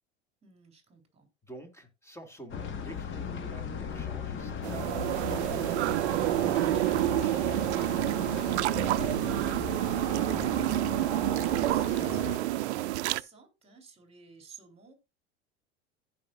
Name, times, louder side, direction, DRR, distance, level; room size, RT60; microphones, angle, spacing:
voice 1, 0.4-1.3 10.1-14.9, right 4 dB, 20° right, 3.6 m, -54 dB
voice 2, 1.4-8.0, equal, 10° left, 2.5 m, -48 dB
sound 1, 2.5-12.4, left 7 dB, 35° left, 1.7 m, -38 dB
sound 2, 4.6-13.2, right 16 dB, 75° right, 0.5 m, -28 dB
sound 3, 7.8-12.0, left 3 dB, 55° left, 2.8 m, -48 dB
15.5 x 5.5 x 2.5 m
hypercardioid pair, 90°, 34 cm